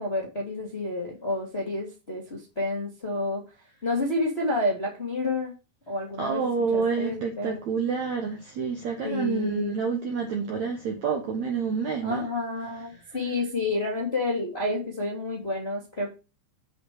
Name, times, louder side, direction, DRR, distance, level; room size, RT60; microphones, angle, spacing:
voice 1, 0.0-3.4 3.8-5.5 5.9-7.6 9.0-9.8 12.0-16.1, left 2 dB, 25° left, 1.3 m, -29 dB
voice 2, 6.2-12.3, right 5 dB, 65° right, 1.8 m, -28 dB
7.9 x 4.2 x 6.6 m
omnidirectional pair, 4.9 m